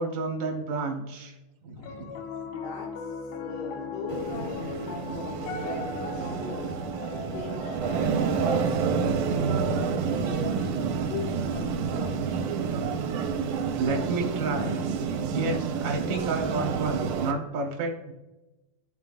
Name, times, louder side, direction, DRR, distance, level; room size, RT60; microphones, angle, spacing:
voice 1, 0.0-1.3 1.6-2.1 13.7-14.8 15.3-18.1, right 3 dB, 70° right, 1 dB, 0.8 m, -30 dB
Piano, 1.8-12.1, left 4 dB, 90° left, 1.3 m, -39 dB
voice 2, 2.4-2.9 3.4-6.8 7.2-8.8 9.2-12.2 12.6-13.1 15.2-15.4, left 3 dB, 70° left, 1 dB, 2.3 m, -40 dB
sound 1, 4.1-17.3, right 5 dB, 90° right, 2.3 m, -29 dB
12.0 x 4.0 x 2.4 m, 1.0 s
omnidirectional pair, 3.6 m